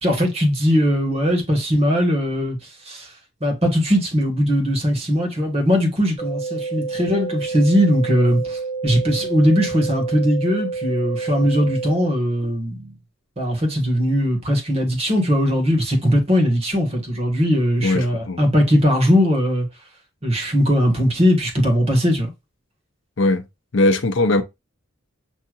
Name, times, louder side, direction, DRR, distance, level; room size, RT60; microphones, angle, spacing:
voice 1, 0.0-2.6 2.9-3.1 3.4-12.9 13.4-19.7 20.2-22.3, equal, 30° right, 1.5 m, -19 dB
sound 1, 6.2-12.2, right 4 dB, 20° left, 1.1 m, -29 dB
voice 2, 17.8-18.4 23.2-23.4 23.7-24.4, left 2 dB, 65° left, 0.7 m, -19 dB
6.5 x 2.7 x 2.4 m
head